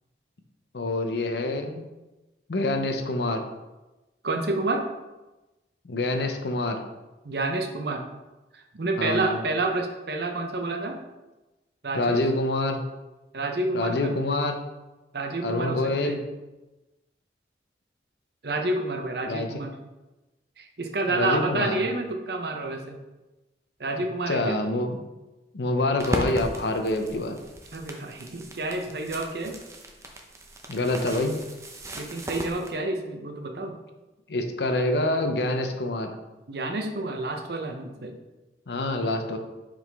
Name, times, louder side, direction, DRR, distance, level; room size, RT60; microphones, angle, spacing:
voice 1, 0.7-1.8 2.5-3.4 5.8-6.8 9.0-9.4 11.9-12.8 13.7-14.6 15.4-16.2 19.3-19.5 21.1-21.8 24.3-25.0 25.5-27.4 30.7-31.4 34.3-36.1 38.7-39.4, left 2 dB, 65° left, 6 dB, 0.7 m, -26 dB
voice 2, 4.2-4.8 7.2-8.0 8.5-11.0 11.8-12.3 13.3-14.1 15.1-16.2 18.4-19.8 20.6-23.0 23.8-24.6 27.7-29.6 32.0-33.8 36.5-38.1, right 2 dB, 60° right, 3 dB, 0.8 m, -29 dB
sound 1, 26.0-32.7, right 1 dB, 15° right, 0.6 m, -37 dB
5.8 x 4.9 x 3.5 m, 1.1 s
head